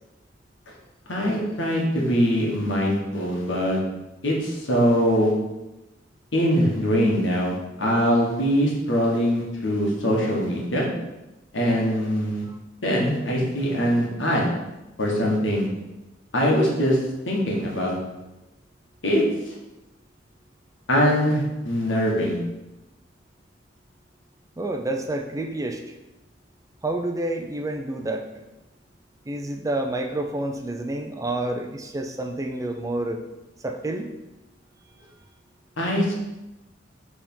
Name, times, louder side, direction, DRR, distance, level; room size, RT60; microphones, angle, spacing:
voice 1, 1.1-3.8 4.2-5.3 6.3-10.8 11.5-12.4 12.8-14.5 15.0-15.7 16.3-17.0 17.3-17.9 19.0-19.5 20.9-22.4 35.8-36.1, equal, 85° left, -2 dB, 1.5 m, -22 dB
voice 2, 24.6-25.8 26.8-28.3 29.3-33.2 33.6-34.1, right 2 dB, 15° right, 5 dB, 0.4 m, -29 dB
4.9 x 3.6 x 5.4 m, 1.0 s
head